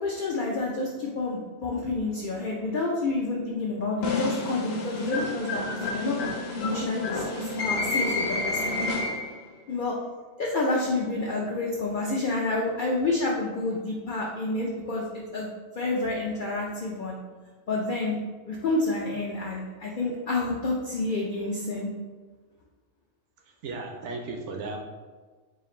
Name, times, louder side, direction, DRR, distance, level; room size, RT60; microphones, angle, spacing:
voice 1, 0.0-5.6 5.9-6.2 6.6-8.7 9.7-9.9 10.4-15.1 15.3-15.5 15.8-17.2 17.7-18.2 18.4-21.9, left 2 dB, 80° left, -2 dB, 0.4 m, -29 dB
sound 1, 4.0-9.4, left 3 dB, 60° left, 0.8 m, -29 dB
voice 2, 23.6-24.8, right 3 dB, 65° right, 2 dB, 0.8 m, -35 dB
3.8 x 2.5 x 4.1 m, 1.4 s
omnidirectional pair, 1.4 m